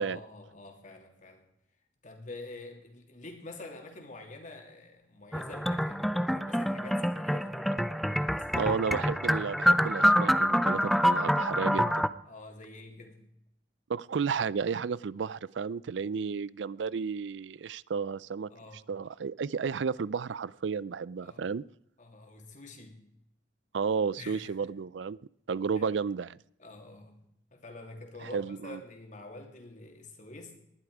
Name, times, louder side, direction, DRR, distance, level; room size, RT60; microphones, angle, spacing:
voice 1, 0.0-1.4 2.0-8.8 12.2-13.2 18.5-18.8 21.2-21.4 22.0-23.1 24.2-24.7 25.7-25.8 26.6-27.2 27.5-30.5, left 2 dB, 45° left, 3 dB, 2.9 m, -47 dB
sound 1, 5.3-12.1, equal, ahead, 0.5 m, -26 dB
voice 2, 8.5-12.1 13.9-18.5 18.9-21.6 23.7-25.2 25.5-26.4 28.2-28.8, right 5 dB, 80° right, 21 dB, 0.4 m, -32 dB
19.0 x 11.5 x 4.9 m, 0.77 s
head